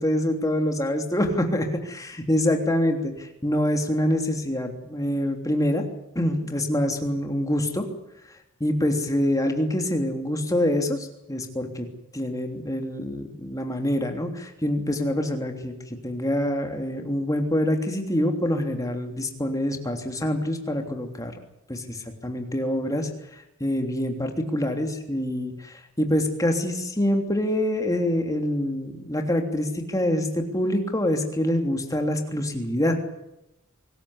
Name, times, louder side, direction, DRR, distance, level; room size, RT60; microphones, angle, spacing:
voice 1, 0.0-5.9 6.1-7.9 8.6-11.9 12.1-15.7 16.0-21.3 21.7-23.1 23.6-33.0, left 1 dB, 15° left, 4 dB, 3.2 m, -25 dB
24.5 x 14.5 x 9.8 m, 0.87 s
head